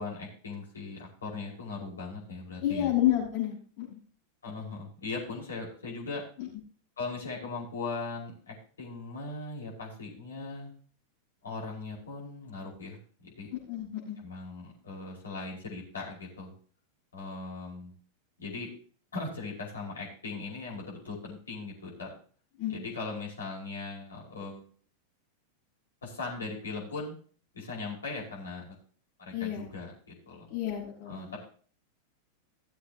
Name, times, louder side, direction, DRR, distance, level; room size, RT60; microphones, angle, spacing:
voice 1, 0.0-2.9 4.4-6.2 7.0-10.7 11.4-13.5 14.2-16.5 17.1-17.9 18.4-18.7 19.1-22.1 22.7-24.6 26.0-27.1 27.5-28.7 29.2-30.5 31.1-31.4, left 3 dB, 70° left, -3 dB, 5.3 m, -39 dB
voice 2, 2.6-4.0 6.4-6.5 13.5-14.2 22.6-22.7 29.3-29.7 30.5-31.4, left 12 dB, 50° left, -5 dB, 5.8 m, -30 dB
18.0 x 7.9 x 3.0 m, 0.44 s
figure-of-eight pair, 90°, 0 cm